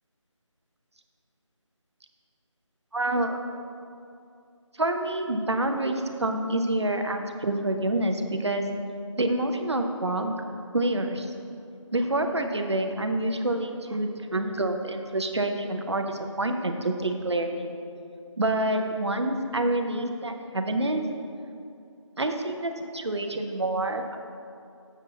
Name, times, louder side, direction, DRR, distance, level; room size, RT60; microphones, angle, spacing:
voice 1, 2.9-3.4 4.8-8.7 9.2-10.4 10.7-11.3 11.9-17.8 18.4-21.0 22.2-24.2, right 1 dB, 55° right, 5 dB, 0.7 m, -27 dB
7.1 x 4.4 x 6.7 m, 2.5 s
figure-of-eight pair, 165°, 17 cm